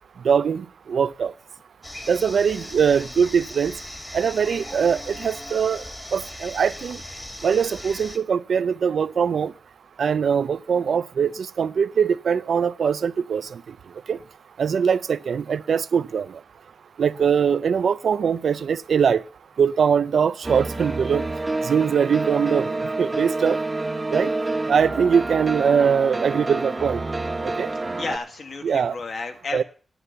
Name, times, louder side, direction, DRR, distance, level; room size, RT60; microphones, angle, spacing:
voice 1, 0.2-1.3 2.1-3.7 4.1-5.8 6.1-7.0 7.4-9.5 10.0-13.6 14.1-14.2 14.6-16.4 17.0-19.2 19.6-21.3 21.6-23.6 24.1-24.3 24.7-27.0 27.4-27.7 28.6-29.0 29.5-29.6, right 7 dB, 80° right, 0.5 m, -22 dB
sound 1, 1.8-8.2, left 1 dB, 20° left, 2.0 m, -38 dB
sound 2, 20.4-28.2, right 2 dB, 25° right, 1.2 m, -28 dB
voice 2, 28.0-29.6, left 3 dB, 65° left, 1.8 m, -32 dB
10.0 x 9.6 x 6.8 m
wide cardioid pair, 100°, 0 cm